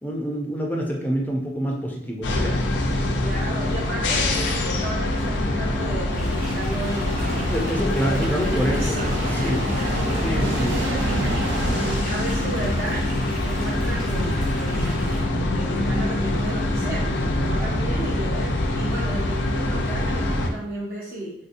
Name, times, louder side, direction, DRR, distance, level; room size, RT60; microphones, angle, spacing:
voice 1, 0.0-2.6 7.5-9.6 10.2-10.8, equal, 10° left, 0 dB, 0.5 m, -27 dB
sound 1, 2.2-20.5, left 1 dB, 80° left, 0.5 m, -24 dB
voice 2, 3.2-7.5 7.8-13.1 13.4-15.0 15.5-21.3, right 2 dB, 55° right, -6 dB, 0.7 m, -34 dB
sound 2, 6.1-15.2, right 1 dB, 30° right, 1.1 m, -40 dB
sound 3, 6.9-12.0, right 2 dB, 85° right, 0.4 m, -31 dB
3.4 x 2.7 x 2.5 m, 0.74 s
head